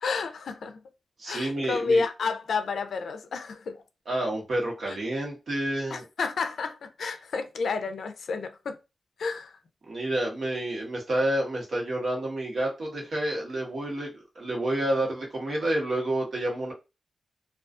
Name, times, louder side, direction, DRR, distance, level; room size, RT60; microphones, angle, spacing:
voice 1, 0.0-0.8 1.3-3.8 4.9-5.0 5.9-8.8 9.2-9.6, left 4 dB, 75° left, 0.4 m, -30 dB
voice 2, 1.2-2.0 4.1-6.1 9.9-16.7, right 1 dB, 60° right, 1.0 m, -29 dB
2.4 x 2.3 x 2.4 m
wide cardioid pair, 100°, 0 cm